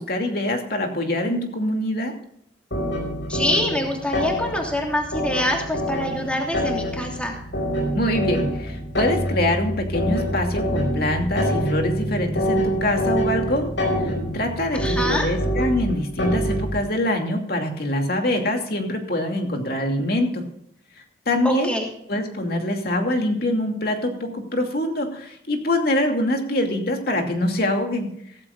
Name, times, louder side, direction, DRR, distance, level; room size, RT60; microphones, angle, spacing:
voice 1, 0.0-2.1 7.9-13.7 14.0-20.5 21.3-21.7 22.1-28.1, left 1 dB, 55° left, 3 dB, 2.6 m, -24 dB
sound 1, 2.7-16.8, equal, 80° left, 5.0 m, -26 dB
voice 2, 3.3-7.3 14.7-15.3 21.4-21.9, left 1 dB, 5° left, 0 dB, 2.9 m, -25 dB
17.0 x 14.5 x 2.5 m, 0.71 s
head